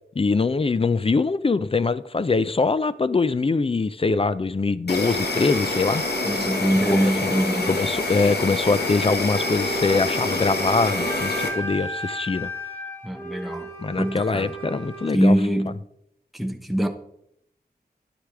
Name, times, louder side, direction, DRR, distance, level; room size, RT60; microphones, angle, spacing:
voice 1, 0.2-6.0 6.9-7.3 7.7-12.5 13.8-15.4, left 4 dB, 35° left, 0.4 m, -23 dB
Insect, 4.9-11.5, left 2 dB, 85° left, 1.6 m, -26 dB
voice 2, 6.3-7.8 13.0-13.7 14.0-14.5 15.1-15.8 16.3-16.9, equal, ahead, 0.9 m, -23 dB
Wind instrument woodwind instrument, 9.3-15.2, right 1 dB, 15° left, 1.7 m, -34 dB
10.5 x 8.1 x 3.5 m
wide cardioid pair, 75°, 17 cm